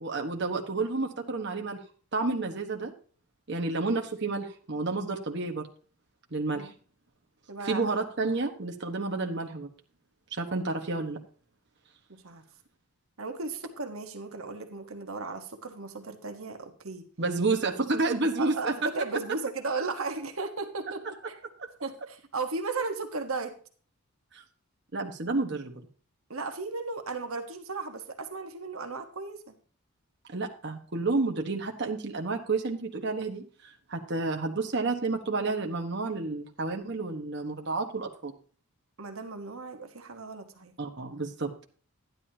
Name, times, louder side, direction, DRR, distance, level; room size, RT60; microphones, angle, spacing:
voice 1, 0.0-1.8 2.1-2.9 3.5-5.7 6.3-6.7 7.6-9.7 10.3-11.2 17.2-18.9 21.6-21.7 24.3-24.4 24.9-25.7 30.3-38.3 40.8-41.6, right 3 dB, 50° right, 2 dB, 1.3 m, -30 dB
voice 2, 7.5-7.9 12.1-12.4 13.2-17.1 18.4-21.4 21.8-23.6 26.3-29.5 39.0-40.7, right 3 dB, 70° right, 6 dB, 1.4 m, -35 dB
12.0 x 10.5 x 2.9 m, 0.42 s
head